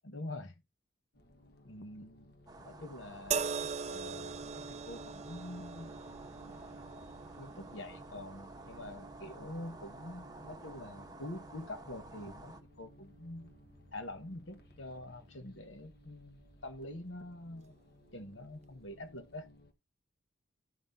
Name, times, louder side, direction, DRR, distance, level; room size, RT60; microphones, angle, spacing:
voice 1, 0.0-0.6 1.6-3.5 3.9-6.2 6.9-13.5 13.9-17.7 18.1-19.5, left 1 dB, 70° left, 1.3 m, -46 dB
sound 1, 1.1-19.7, left 1 dB, 50° left, 1.4 m, -61 dB
sound 2, 2.5-12.6, right 2 dB, 20° right, 1.1 m, -51 dB
sound 3, 3.3-16.6 17.6-17.8, right 6 dB, 35° right, 0.4 m, -44 dB
13.5 x 5.6 x 2.6 m
head